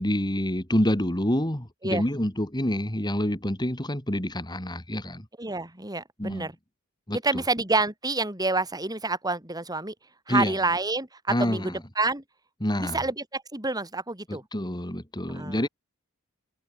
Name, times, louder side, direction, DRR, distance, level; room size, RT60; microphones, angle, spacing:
voice 1, 0.0-5.3 6.2-6.5 7.1-7.4 10.3-10.5 11.3-11.8 12.6-13.0 14.3-15.7, equal, 20° left, 3.8 m, -27 dB
voice 2, 5.4-6.6 7.1-9.9 10.3-12.2 12.8-14.4 15.3-15.7, right 3 dB, 20° right, 5.2 m, -28 dB
head